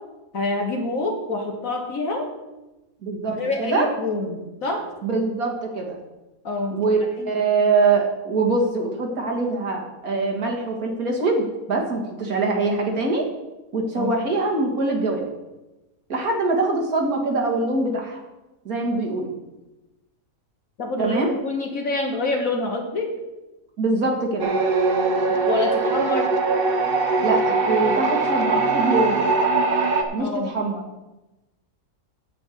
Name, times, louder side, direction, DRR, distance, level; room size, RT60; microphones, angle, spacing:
voice 1, 0.3-2.3 3.3-4.8 6.4-6.8 7.2-7.3 14.0-14.1 20.8-23.1 25.5-26.3 30.2-30.5, left 2 dB, 60° left, 1 dB, 1.7 m, -26 dB
voice 2, 3.0-3.9 5.0-6.0 6.7-13.3 13.7-15.2 16.1-18.2 18.7-19.3 21.0-21.3 23.8-24.5 27.2-29.3 30.1-30.8, right 3 dB, 65° right, 1 dB, 2.1 m, -23 dB
sound 1, 24.4-30.0, right 3 dB, 40° right, 1.2 m, -21 dB
8.7 x 6.1 x 8.3 m, 1.0 s
omnidirectional pair, 1.7 m